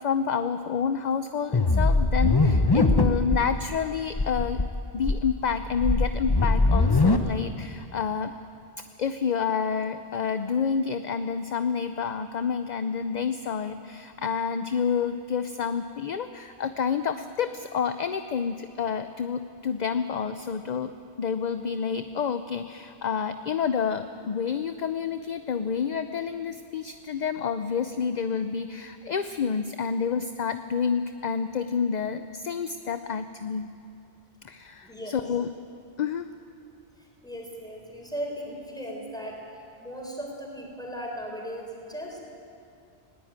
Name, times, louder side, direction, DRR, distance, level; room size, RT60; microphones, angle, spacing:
voice 1, 0.0-4.6 4.9-8.3 9.0-20.9 21.2-33.7 34.4-35.5 36.0-36.3, left 6 dB, 45° left, 9 dB, 0.6 m, -29 dB
sound 1, 1.5-3.4 3.7-3.8 4.1-4.6 5.0-7.2, left 3 dB, 20° left, 1.0 m, -21 dB
voice 2, 34.8-35.2 37.0-42.3, equal, 5° left, -1 dB, 4.5 m, -37 dB
20.0 x 17.5 x 8.9 m, 2.5 s
omnidirectional pair, 1.1 m